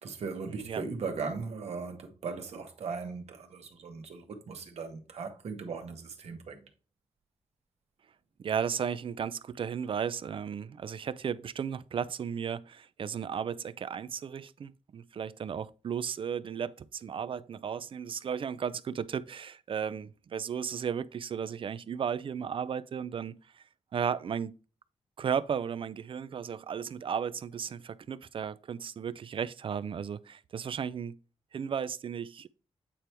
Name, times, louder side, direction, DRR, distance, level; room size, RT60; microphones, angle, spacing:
voice 1, 0.0-6.6, right 4 dB, 75° right, 1.3 m, -38 dB
voice 2, 8.4-23.4 23.9-24.6 25.2-31.2 31.5-32.5, right 7 dB, 55° right, 0.4 m, -34 dB
8.6 x 4.5 x 3.3 m
wide cardioid pair, 110°, 11 cm